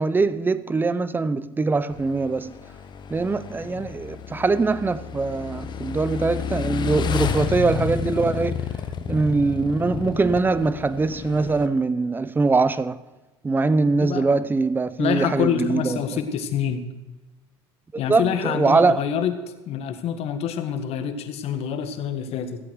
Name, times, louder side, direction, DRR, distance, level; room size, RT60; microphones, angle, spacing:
voice 1, 0.0-2.5 3.1-8.7 9.1-13.0 13.4-16.2 18.1-19.0, right 3 dB, 15° right, 0.6 m, -22 dB
Motorcycle / Engine, 1.9-11.7, left 8 dB, 35° left, 1.0 m, -31 dB
voice 2, 15.0-16.8 18.0-22.6, left 8 dB, 50° left, 1.6 m, -26 dB
15.0 x 8.3 x 6.4 m
supercardioid pair, 100°, 13 cm